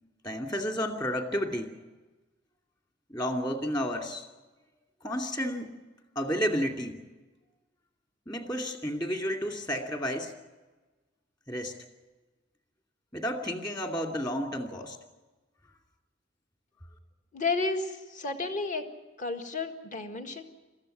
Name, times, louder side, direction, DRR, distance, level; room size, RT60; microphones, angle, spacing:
voice 1, 0.2-1.7 3.1-4.2 5.0-5.8 6.2-7.0 8.3-10.3 11.5-11.7 13.1-15.0, equal, 20° left, 3 dB, 2.4 m, -31 dB
voice 2, 17.3-18.9 19.2-20.4, left 3 dB, 40° left, 5 dB, 1.8 m, -32 dB
21.5 x 15.0 x 10.0 m, 1.2 s
head